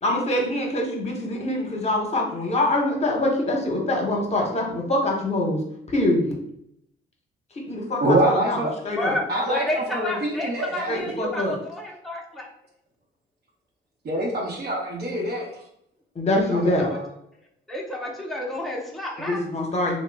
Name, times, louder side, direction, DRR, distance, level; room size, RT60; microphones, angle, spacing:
voice 1, 0.0-5.6 5.9-6.3 7.7-9.2 10.9-11.5 16.1-16.8 19.2-20.0, left 1 dB, 35° left, 1 dB, 0.9 m, -24 dB
voice 2, 8.0-8.7 9.3-11.0 14.0-15.5 16.5-17.0, right 1 dB, 55° right, -3 dB, 0.8 m, -25 dB
voice 3, 9.0-12.5 16.4-17.0 17.7-19.4, left 1 dB, ahead, -2 dB, 0.6 m, -30 dB
2.9 x 2.1 x 3.3 m, 0.73 s
cardioid pair, 90°, 20 cm